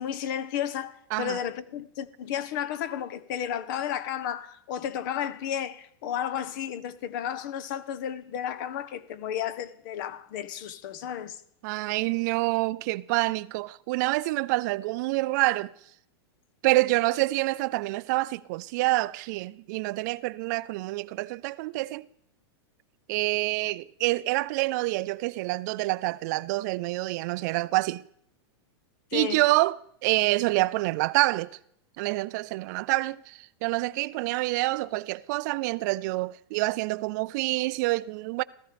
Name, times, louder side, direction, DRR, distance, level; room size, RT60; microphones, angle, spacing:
voice 1, 0.0-11.4 29.1-29.4, left 9 dB, 50° left, 1.2 m, -33 dB
voice 2, 11.6-15.7 16.6-22.1 23.1-28.0 29.1-31.5 32.0-38.4, right 20 dB, 45° right, 0.5 m, -27 dB
17.0 x 14.0 x 5.1 m
supercardioid pair, 155°, 13 cm